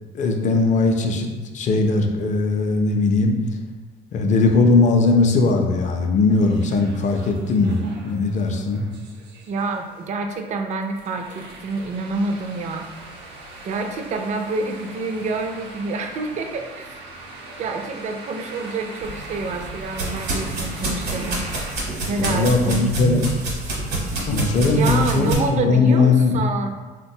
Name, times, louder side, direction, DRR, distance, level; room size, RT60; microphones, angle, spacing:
voice 1, 0.1-3.4 4.1-8.9 22.2-23.2 24.3-26.4, left 3 dB, 45° left, 4 dB, 0.4 m, -19 dB
sound 1, 6.3-21.7, right 2 dB, 90° right, 0.6 m, -41 dB
voice 2, 9.5-12.9 13.6-17.0 17.6-21.5 22.1-22.9 24.5-26.7, right 3 dB, 45° right, 5 dB, 0.4 m, -27 dB
sound 2, 19.0-25.3, right 2 dB, 70° right, 0.9 m, -28 dB
3.7 x 2.2 x 2.7 m, 1.3 s
cardioid pair, 110°, 17 cm